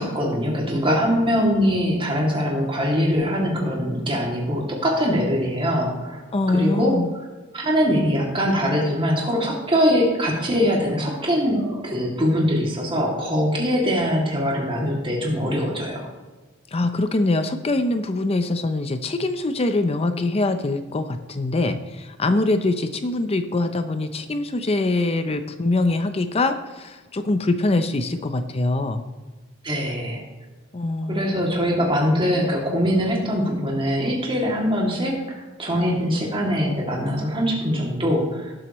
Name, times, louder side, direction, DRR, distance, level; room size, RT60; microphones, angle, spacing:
voice 1, 0.0-7.0 7.5-16.1 29.6-30.2 31.1-38.5, equal, 25° right, -2 dB, 2.4 m, -22 dB
voice 2, 6.3-7.1 16.7-29.0 30.7-31.3 35.8-36.0, left 2 dB, 30° left, 9 dB, 0.5 m, -23 dB
17.5 x 7.7 x 3.1 m, 1.3 s
head